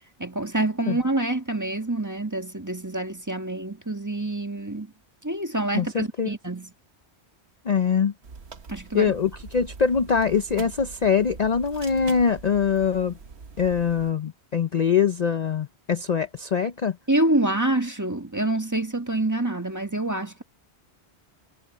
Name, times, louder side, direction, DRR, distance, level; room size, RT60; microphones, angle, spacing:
voice 1, 0.2-4.9 5.2-6.7 8.7-9.1 17.1-20.4, right 2 dB, 15° right, 1.9 m, -26 dB
voice 2, 5.7-6.3 7.7-8.1 8.9-13.1 13.6-17.0, left 6 dB, 45° left, 0.7 m, -23 dB
sound 1, 8.2-14.1, right 5 dB, 75° right, 1.5 m, -43 dB
omnidirectional pair, 1.1 m